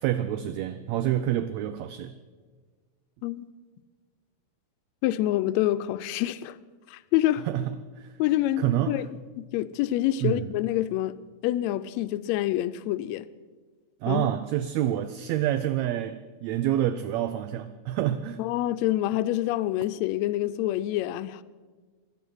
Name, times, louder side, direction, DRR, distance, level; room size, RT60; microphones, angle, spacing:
voice 1, 0.0-2.1 7.5-8.1 8.6-9.0 10.2-10.4 14.0-18.4, right 12 dB, 80° right, 1.7 m, -27 dB
voice 2, 5.0-6.6 6.9-7.5 8.2-9.1 9.4-11.2 11.4-13.3 14.1-14.3 18.4-21.4, left 14 dB, 80° left, 1.7 m, -27 dB
17.5 x 11.5 x 6.3 m
omnidirectional pair, 3.4 m